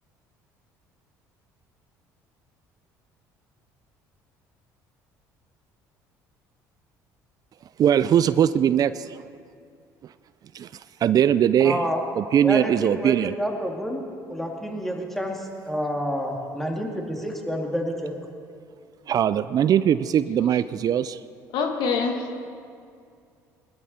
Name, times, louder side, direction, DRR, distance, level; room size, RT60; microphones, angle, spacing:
voice 1, 7.8-9.2 10.5-10.7 11.0-11.8 12.2-13.4 19.1-21.2, right 9 dB, 50° right, 14 dB, 0.5 m, -20 dB
voice 2, 11.6-12.0 12.4-14.0 14.3-18.1, equal, 5° left, 0 dB, 2.7 m, -29 dB
voice 3, 21.5-22.5, left 5 dB, 70° left, 4 dB, 1.8 m, -26 dB
20.0 x 13.0 x 4.4 m, 2.3 s
supercardioid pair, 75°, 8 cm